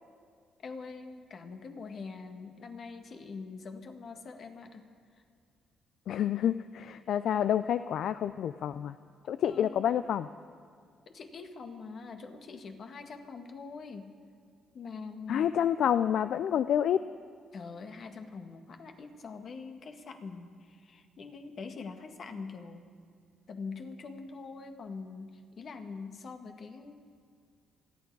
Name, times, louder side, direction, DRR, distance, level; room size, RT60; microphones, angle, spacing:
voice 1, 0.6-4.9 9.5-9.9 11.1-14.1 14.7-15.5 17.5-22.8 23.5-27.0, left 4 dB, 55° left, 6 dB, 1.5 m, -44 dB
voice 2, 6.1-9.0 9.3-10.3 15.3-17.0, left 9 dB, 70° left, 13 dB, 0.3 m, -28 dB
27.5 x 9.4 x 4.7 m, 2.2 s
cardioid pair, 90°, 0 cm